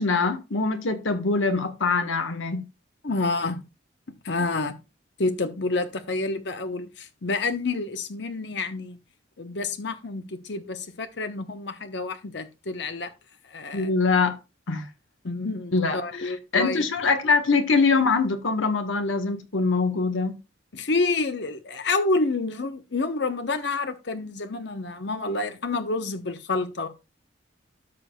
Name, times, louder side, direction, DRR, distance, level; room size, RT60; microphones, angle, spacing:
voice 1, 0.0-2.6 13.7-14.3 14.7-14.9 15.7-20.3, left 4 dB, 85° left, 1.2 m, -23 dB
voice 2, 3.0-3.6 4.1-4.8 5.2-9.0 9.4-13.1 13.5-13.9 15.2-16.8 20.7-26.9, left 3 dB, 60° left, 0.8 m, -28 dB
13.0 x 5.9 x 2.3 m
head